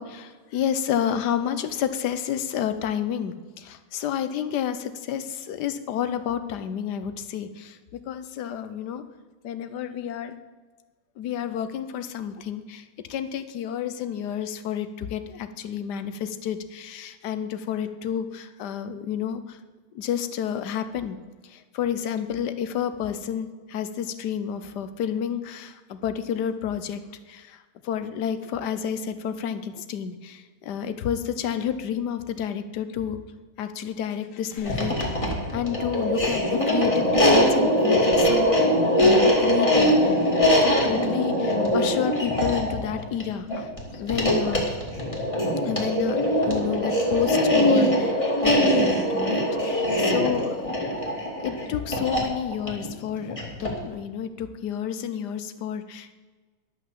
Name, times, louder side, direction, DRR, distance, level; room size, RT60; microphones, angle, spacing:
voice 1, 0.0-9.0 9.4-10.3 11.2-19.6 19.9-21.2 21.5-27.0 27.3-27.6 27.8-33.2 33.6-35.2 35.5-38.7 39.0-40.2 40.6-44.7 45.6-51.1 51.4-56.2, left 9 dB, 85° left, 11 dB, 1.4 m, -30 dB
sound 1, 34.6-53.9, equal, 20° left, 2.2 m, -22 dB
11.5 x 5.8 x 7.5 m, 1.4 s
omnidirectional pair, 1.7 m